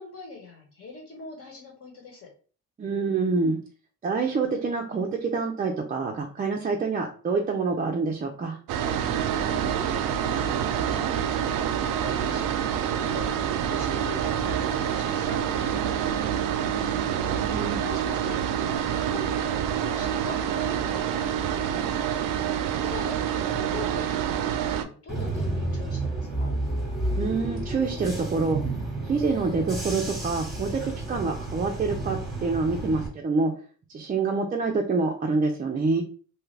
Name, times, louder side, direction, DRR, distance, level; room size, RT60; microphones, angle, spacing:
voice 1, 0.0-2.3 9.4-9.9 10.2-17.5 17.8-22.3 22.8-26.5, left 3 dB, 45° left, 1 dB, 1.2 m, -43 dB
voice 2, 2.8-3.6 4.0-8.6 17.5-17.8 27.2-28.6 29.1-30.8 31.1-33.5 33.9-36.0, right 4 dB, 25° right, 1 dB, 0.4 m, -26 dB
sound 1, 8.7-24.8, right 9 dB, 85° right, 0.5 m, -27 dB
Bus / Engine, 25.1-33.1, right 2 dB, ahead, 1.1 m, -31 dB
2.7 x 2.3 x 3.2 m, 0.40 s
cardioid pair, 115°, 32 cm